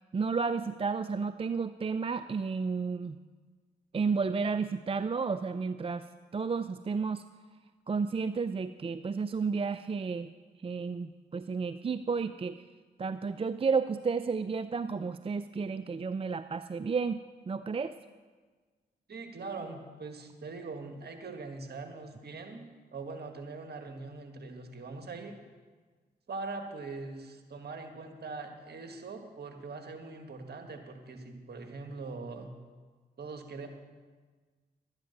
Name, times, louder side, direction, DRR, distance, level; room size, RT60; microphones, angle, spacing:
voice 1, 0.1-3.2 3.9-6.0 6.3-7.2 7.9-10.3 10.6-12.6 13.0-17.9, right 5 dB, 30° right, 12 dB, 0.4 m, -32 dB
voice 2, 19.1-22.7 22.9-25.4 26.3-32.5 33.2-33.7, right 3 dB, 60° right, 5 dB, 1.7 m, -42 dB
12.0 x 9.0 x 6.6 m, 1.4 s
supercardioid pair, 40°, 19 cm